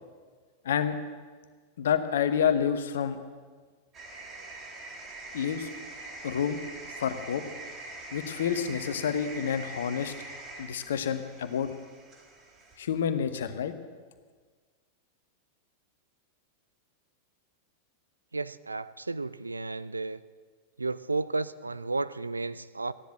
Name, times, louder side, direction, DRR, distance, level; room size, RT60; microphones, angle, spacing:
voice 1, 0.6-1.0 1.8-3.2 5.3-5.7 6.2-6.6 7.0-7.4 8.1-10.1 10.6-11.7 12.8-13.7, left 8 dB, 60° left, 10 dB, 1.1 m, -28 dB
sound 1, 3.9-12.8, right 2 dB, 30° right, 3.1 m, -44 dB
voice 2, 18.3-20.2 20.8-22.9, right 3 dB, 80° right, 16 dB, 0.4 m, -33 dB
15.5 x 10.5 x 7.7 m, 1.5 s
figure-of-eight pair, 90°, 0 cm